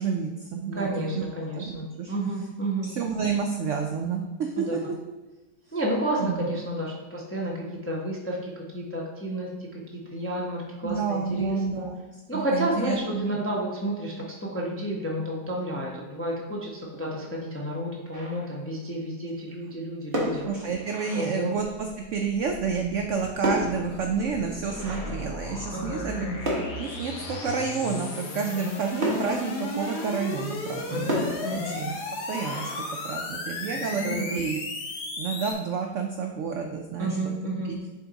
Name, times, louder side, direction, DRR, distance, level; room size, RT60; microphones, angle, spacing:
voice 1, 0.0-0.9 1.2-1.3 1.6-2.1 2.8-5.0 5.7-5.8 6.2-6.4 10.8-12.0 12.3-13.3 20.5-26.3 26.7-31.1 31.4-32.0 32.3-34.6 34.9-37.2 37.7-37.8, right 5 dB, 75° right, 3 dB, 0.7 m, -30 dB
voice 2, 0.8-2.9 4.6-4.8 5.7-11.9 12.3-20.5 21.1-21.5 25.7-26.4 30.9-31.7 34.0-34.4 37.0-37.7, right 1 dB, 15° left, -3 dB, 0.4 m, -31 dB
sound 1, 18.1-18.8 20.0-21.8 22.9-26.0 26.4-28.0 29.0-30.4 31.1-33.6, equal, 35° right, 1.4 m, -34 dB
sound 2, 21.6-35.5, left 3 dB, 75° left, 1.5 m, -35 dB
7.0 x 3.6 x 4.0 m, 1.1 s
omnidirectional pair, 1.8 m